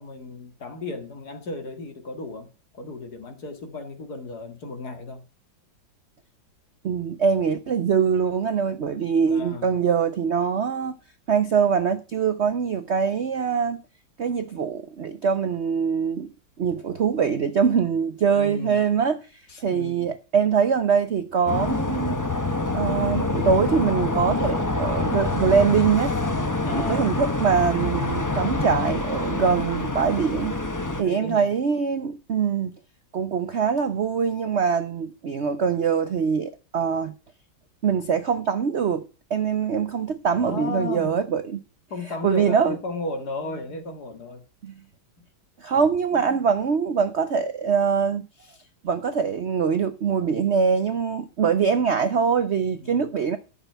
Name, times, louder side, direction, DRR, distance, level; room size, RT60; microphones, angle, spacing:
voice 1, 0.0-5.2 9.3-9.8 18.3-18.8 19.5-20.1 26.6-27.1 31.0-31.5 40.4-41.2 41.9-44.4 45.2-45.3 46.1-46.4 52.8-53.1, left 3 dB, 55° left, 2.3 m, -35 dB
voice 2, 6.8-11.0 11.3-13.8 14.2-16.3 16.6-22.2 22.7-26.1 26.7-30.6 31.0-32.7 33.1-37.1 37.8-41.6 42.1-42.8 44.6-44.7 45.6-48.6 48.8-53.4, right 6 dB, 55° right, 0.7 m, -23 dB
sound 1, 21.5-31.0, left 2 dB, 30° left, 0.3 m, -26 dB
12.5 x 6.8 x 5.6 m
omnidirectional pair, 2.1 m